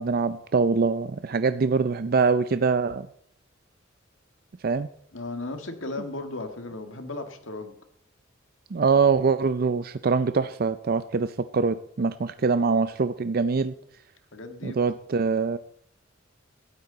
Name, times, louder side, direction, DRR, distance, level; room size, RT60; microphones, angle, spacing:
voice 1, 0.0-3.1 4.6-4.9 8.7-13.7 14.6-15.6, right 4 dB, 50° right, 12 dB, 0.5 m, -24 dB
voice 2, 5.1-7.8 14.3-14.8, left 2 dB, 80° left, 6 dB, 1.9 m, -35 dB
17.0 x 12.5 x 4.0 m, 0.71 s
head